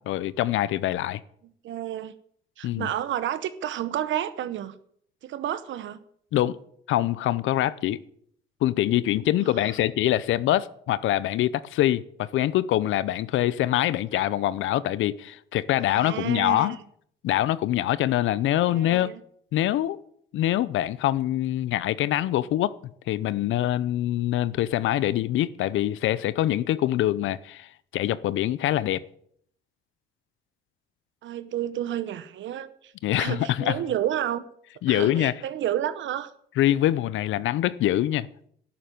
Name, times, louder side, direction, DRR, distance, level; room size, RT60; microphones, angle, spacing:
voice 1, 0.1-1.2 2.6-2.9 6.3-6.6 6.9-8.0 8.6-16.8 17.2-19.1 19.5-20.0 20.3-22.7 23.1-29.0 33.0-33.8 34.8-35.3 36.6-38.3, left 13 dB, 80° left, 0.6 m, -24 dB
voice 2, 1.6-2.1 2.6-4.7 5.2-6.0 15.9-16.8 18.7-19.2 31.2-34.4 34.9-36.3, right 11 dB, 70° right, 0.8 m, -30 dB
11.0 x 6.9 x 9.1 m
cardioid pair, 90°, 20 cm